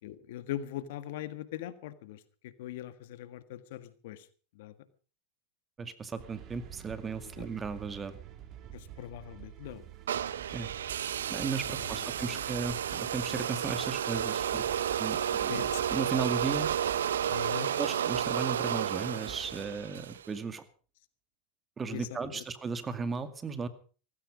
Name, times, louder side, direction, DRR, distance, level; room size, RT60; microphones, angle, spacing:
voice 1, 0.0-2.2 2.6-4.3 4.5-4.7 7.2-7.5 8.7-9.8 11.8-12.4 15.5-15.8 17.2-17.7 21.9-22.4, left 12 dB, 70° left, 13 dB, 1.6 m, -41 dB
voice 2, 5.8-8.1 10.5-10.7 11.3-14.6 15.0-16.7 17.8-20.6 21.8-23.7, right 5 dB, 25° right, 11 dB, 2.1 m, -36 dB
sound 1, 6.2-20.2, right 11 dB, 45° right, 2.6 m, -49 dB
sound 2, 10.1-20.3, right 9 dB, 90° right, 0.7 m, -32 dB
17.0 x 15.5 x 5.1 m, 0.39 s
hypercardioid pair, 100°, 0 cm